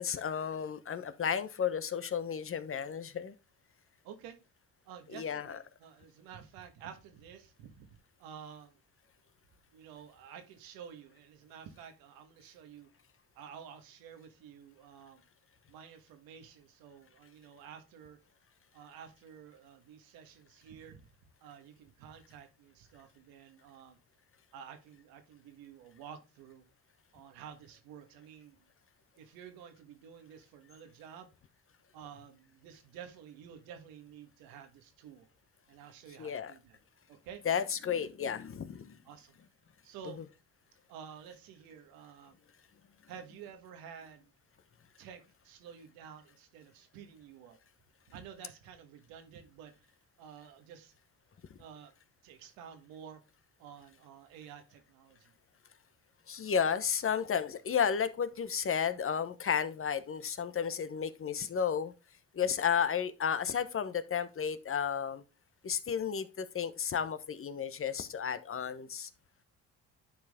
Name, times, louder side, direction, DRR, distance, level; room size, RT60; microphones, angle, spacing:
voice 1, 0.0-3.3 5.1-5.6 36.2-36.5 37.4-39.0 56.3-61.9 62.3-65.2 65.6-69.1, left 7 dB, 40° left, 1.0 m, -33 dB
voice 2, 4.0-4.4 4.8-7.9 8.2-8.8 9.7-12.9 13.3-15.2 15.7-18.2 18.7-21.0 21.4-24.0 24.5-26.6 27.1-28.6 29.2-31.3 31.9-35.3 35.7-36.8 37.1-37.4 39.0-39.3 39.8-40.2 40.9-42.4 43.1-44.3 45.0-47.6 48.1-49.7 50.2-50.9 51.6-51.9 52.2-53.2 53.6-55.3, right 8 dB, 85° right, 1.6 m, -51 dB
10.5 x 4.7 x 3.6 m
supercardioid pair, 70°, 34 cm